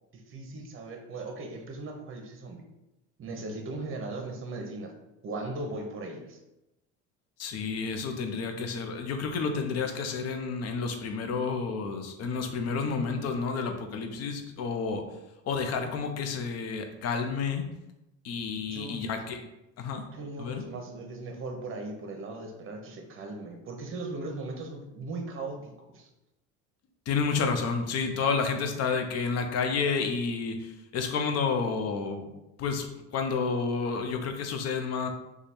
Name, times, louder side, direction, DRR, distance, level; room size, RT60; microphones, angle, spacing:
voice 1, 0.1-2.6 3.2-4.9 5.2-6.4 18.6-19.0 20.1-26.1, right 2 dB, 35° right, 3 dB, 0.9 m, -38 dB
voice 2, 7.4-15.1 15.4-17.7 18.2-19.4 19.8-20.1 20.4-20.6 27.1-32.3 32.6-35.1, left 5 dB, 45° left, 5 dB, 0.7 m, -30 dB
3.2 x 2.4 x 4.2 m, 0.93 s
supercardioid pair, 90°, 35 cm